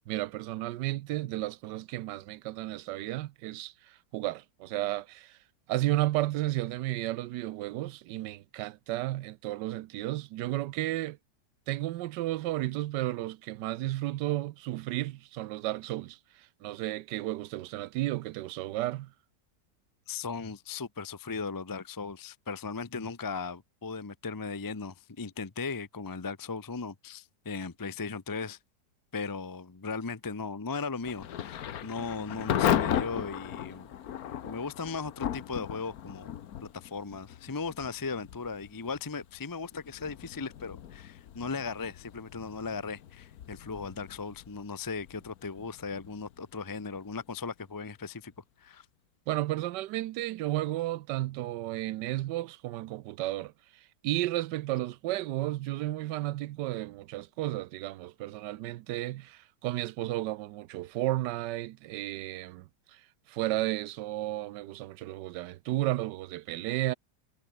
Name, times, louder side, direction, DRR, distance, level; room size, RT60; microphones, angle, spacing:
voice 1, 0.1-5.4 5.7-11.2 11.7-19.1 49.3-63.0 63.3-66.9, right 16 dB, 75° right, 1.2 m, -33 dB
voice 2, 20.1-28.6 29.1-33.9 34.4-36.3 36.6-48.3 48.6-48.9, left 4 dB, 25° left, 0.4 m, -37 dB
Thunder / Rain, 31.0-47.7, left 10 dB, 60° left, 1.3 m, -36 dB
omnidirectional pair, 1.9 m